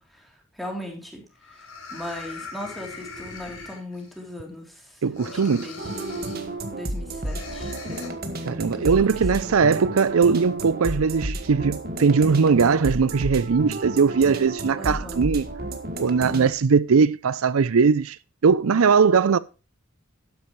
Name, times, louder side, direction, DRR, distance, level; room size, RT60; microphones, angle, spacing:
voice 1, 0.0-8.2 8.8-9.6 14.8-15.2, left 1 dB, ahead, 3.3 m, -39 dB
sound 1, 0.9-1.0 1.4-4.2 5.1-6.5 7.2-8.1, left 3 dB, 90° left, 4.6 m, -39 dB
voice 2, 5.0-5.7 8.5-15.5 16.0-18.2 18.4-19.4, right 5 dB, 80° right, 0.5 m, -20 dB
sound 2, 5.8-16.5, right 1 dB, 45° right, 1.7 m, -32 dB
12.5 x 10.5 x 3.2 m
head